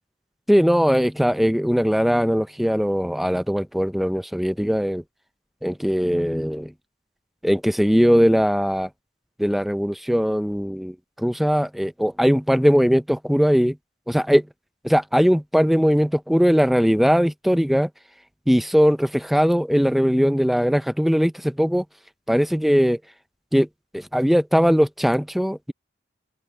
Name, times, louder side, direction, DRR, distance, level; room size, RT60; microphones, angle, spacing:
voice 1, 0.5-5.0 5.6-6.7 7.4-8.9 9.4-13.8 14.1-14.5 14.8-17.9 18.5-21.8 22.3-23.0 23.5-23.7 23.9-25.7, equal, ahead, 0.4 m, -20 dB
open air
head